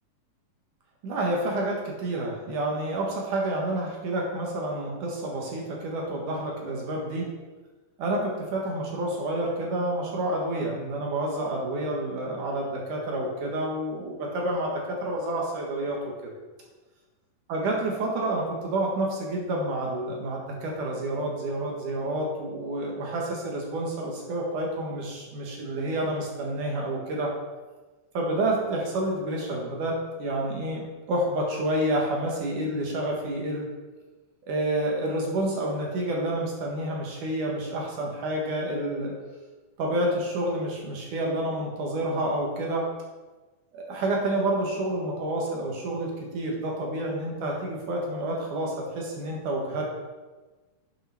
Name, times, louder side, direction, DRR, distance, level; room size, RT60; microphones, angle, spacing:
voice 1, 1.0-7.3 8.0-16.3 17.5-27.3 28.1-33.7 34.4-39.1 39.8-42.9 43.7-49.9, right 1 dB, 60° right, -1 dB, 3.0 m, -29 dB
9.0 x 6.9 x 6.0 m, 1.2 s
omnidirectional pair, 4.4 m